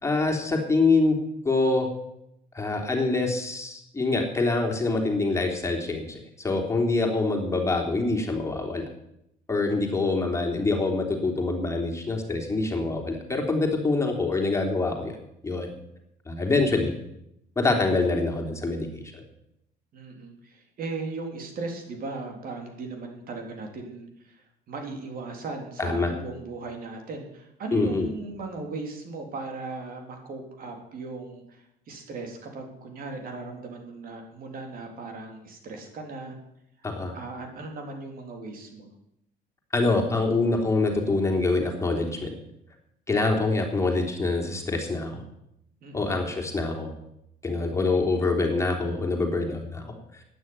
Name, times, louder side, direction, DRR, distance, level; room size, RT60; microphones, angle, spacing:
voice 1, 0.0-1.2 1.5-1.9 2.5-8.9 9.5-15.2 15.4-15.7 16.3-16.9 17.6-19.2 25.8-26.1 27.7-28.1 36.8-37.2 39.7-42.3 43.1-45.2 45.9-46.9 47.4-50.0, left 3 dB, 15° left, 1 dB, 3.4 m, -25 dB
voice 2, 19.9-36.4 37.1-38.9 45.8-46.1, right 3 dB, 60° right, 3 dB, 3.6 m, -37 dB
12.5 x 9.3 x 9.7 m, 0.80 s
cardioid pair, 110°, 17 cm